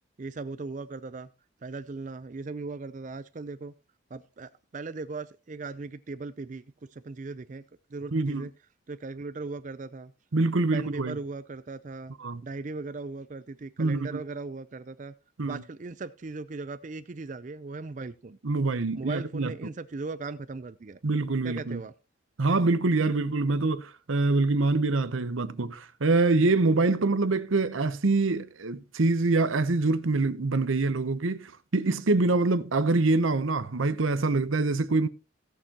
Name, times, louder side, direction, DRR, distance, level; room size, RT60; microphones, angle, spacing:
voice 1, 0.2-1.3 1.6-3.7 4.1-6.6 6.9-7.6 7.9-8.5 8.9-10.1 10.7-12.1 12.4-15.1 15.4-18.4 18.9-21.0 21.4-21.9, right 3 dB, 40° right, 0.4 m, -38 dB
voice 2, 8.1-8.5 10.3-11.2 12.2-12.4 13.8-14.2 15.4-15.6 18.4-19.5 21.0-21.8 22.4-35.1, right 3 dB, 80° right, 0.8 m, -25 dB
17.5 x 6.7 x 2.9 m
head